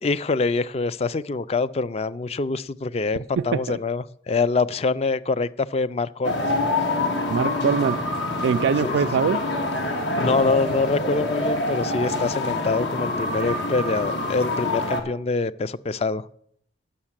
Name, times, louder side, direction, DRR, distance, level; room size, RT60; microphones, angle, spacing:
voice 1, 0.0-6.6 8.8-9.0 9.9-16.3, left 3 dB, 35° left, 0.3 m, -25 dB
voice 2, 3.4-3.8 7.3-8.1 8.4-9.4, right 6 dB, 85° right, 0.3 m, -23 dB
sound 1, 6.2-15.0, left 2 dB, 85° left, 1.6 m, -26 dB
9.8 x 6.4 x 7.4 m
head